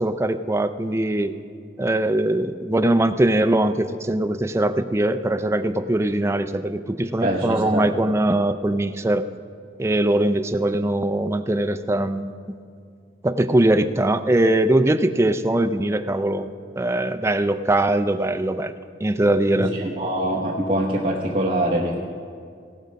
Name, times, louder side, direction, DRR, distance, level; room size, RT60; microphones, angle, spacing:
voice 1, 0.0-1.3 1.8-9.3 9.8-12.6 13.2-18.7 19.0-19.7, right 1 dB, 15° right, 10 dB, 0.4 m, -21 dB
voice 2, 7.2-7.9 19.6-22.0, right 1 dB, 30° right, -6 dB, 1.0 m, -24 dB
17.0 x 6.3 x 5.2 m, 2.3 s
head